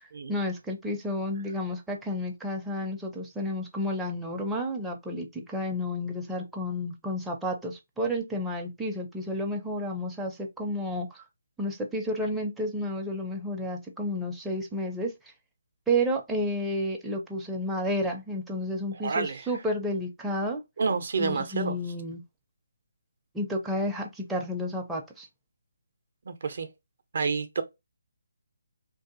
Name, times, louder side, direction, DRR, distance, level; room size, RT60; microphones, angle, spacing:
voice 1, 0.3-11.3 11.6-15.3 15.9-20.6 21.2-22.2 23.3-25.3, equal, 5° right, 0.4 m, -31 dB
voice 2, 19.0-19.5 20.8-21.8 26.3-26.7 27.1-27.6, right 5 dB, 55° right, 0.5 m, -29 dB
2.6 x 2.4 x 2.4 m
figure-of-eight pair, 150°, 0 cm